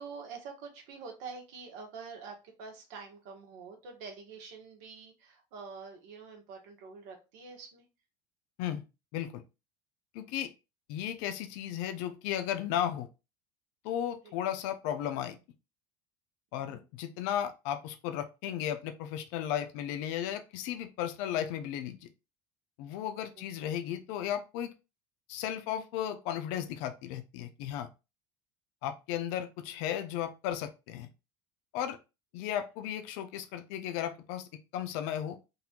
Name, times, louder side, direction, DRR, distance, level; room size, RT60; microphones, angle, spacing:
voice 1, 0.0-7.8 14.2-14.3 16.6-16.8 23.3-23.6 32.4-32.5, right 5 dB, 75° right, 1.5 m, -46 dB
voice 2, 10.1-10.5 10.9-13.1 13.8-15.4 16.5-22.1 22.8-24.7 25.3-27.9 28.8-31.1 31.7-32.0 32.3-35.4, left 10 dB, 75° left, 0.6 m, -35 dB
3.9 x 2.8 x 3.7 m
supercardioid pair, 90°, 13 cm